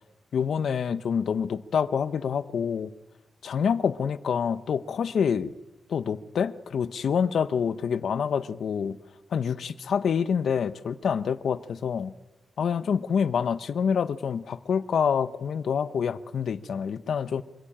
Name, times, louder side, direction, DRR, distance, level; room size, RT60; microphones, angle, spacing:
voice 1, 0.3-2.9 3.4-5.5 5.9-9.0 9.3-12.1 12.6-17.4, left 7 dB, 80° left, 0.9 m, -27 dB
25.0 x 16.5 x 8.8 m
wide cardioid pair, 145°, 0 cm